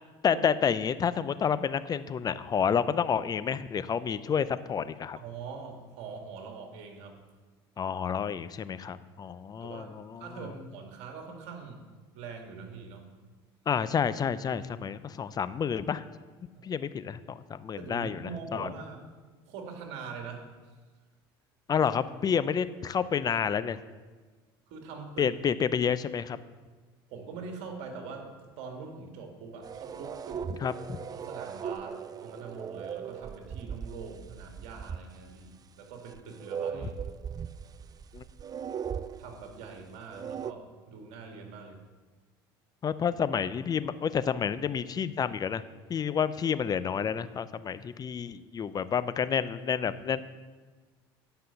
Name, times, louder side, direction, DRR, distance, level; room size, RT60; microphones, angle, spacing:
voice 1, 0.2-5.2 7.8-10.3 13.7-16.0 16.6-18.2 18.5-18.7 21.7-23.8 25.2-26.4 30.6-31.0 36.7-36.9 38.1-38.2 42.8-45.6 45.9-50.2, left 7 dB, 30° left, 14 dB, 0.5 m, -29 dB
voice 2, 5.2-7.2 9.6-9.9 10.2-11.8 12.1-13.1 16.5-16.7 17.8-19.0 19.5-20.5 24.7-25.3 27.1-30.4 31.1-36.9 39.2-41.8, right 5 dB, 65° right, 3 dB, 2.1 m, -43 dB
sound 1, 29.6-35.0 35.3-35.4 36.1-39.7 40.1-40.5, right 7 dB, 30° right, 0.4 m, -38 dB
10.0 x 5.7 x 7.0 m, 1.4 s
hypercardioid pair, 80°, 12 cm